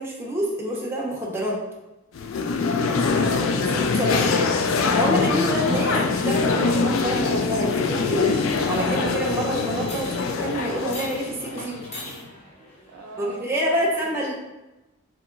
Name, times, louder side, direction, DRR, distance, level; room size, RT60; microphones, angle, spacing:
voice 1, 0.0-1.6 3.7-4.2 5.0-8.4 8.6-11.8 13.2-14.3, equal, 10° right, -3 dB, 0.7 m, -27 dB
sound 1, 2.2-12.2, left 4 dB, 75° left, 0.4 m, -24 dB
sound 2, 2.3-13.4, equal, 30° left, 0.9 m, -44 dB
voice 2, 2.9-3.5 3.9-4.6 5.9-6.0 7.1-7.4 12.0-12.4 12.9-14.3, right 3 dB, 90° right, 3 dB, 0.5 m, -40 dB
3.5 x 2.9 x 3.8 m, 1.0 s
head